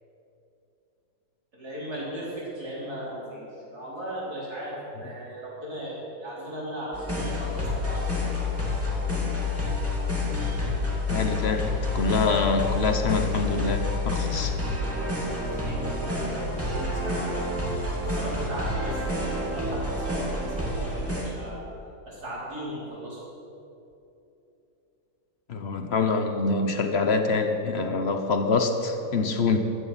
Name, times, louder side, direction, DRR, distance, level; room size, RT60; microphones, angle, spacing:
voice 1, 1.5-8.3 15.5-17.5 18.0-21.6 22.1-23.2, equal, 50° right, -6 dB, 4.7 m, -37 dB
sound 1, 6.9-21.2, left 2 dB, 5° right, 2.4 m, -28 dB
voice 2, 11.1-14.6 25.5-29.6, left 3 dB, 45° left, 6 dB, 0.8 m, -25 dB
14.5 x 12.0 x 5.8 m, 2.9 s
omnidirectional pair, 2.1 m